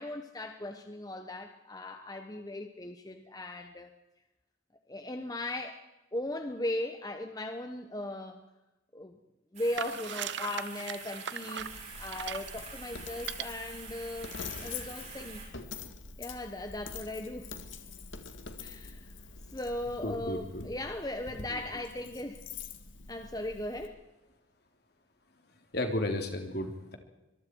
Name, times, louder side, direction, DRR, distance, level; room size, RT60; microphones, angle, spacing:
voice 1, 0.0-3.9 4.9-5.8 6.1-8.4 8.9-9.2 9.5-11.7 12.0-14.3 14.6-15.4 16.2-17.5 18.6-19.1 19.5-22.4 23.1-24.0, left 1 dB, 20° left, 6 dB, 1.1 m, -38 dB
sound 1, 9.5-15.4, right 5 dB, 35° right, 7.4 m, -46 dB
sound 2, 9.8-12.6 13.2-13.4, right 8 dB, 65° right, 0.8 m, -38 dB
Coin (dropping), 11.6-23.9, left 5 dB, 80° left, 1.9 m, -45 dB
voice 2, 20.0-20.6 25.7-27.0, left 1 dB, 55° left, 4 dB, 3.4 m, -33 dB
25.0 x 22.0 x 4.7 m, 1.0 s
head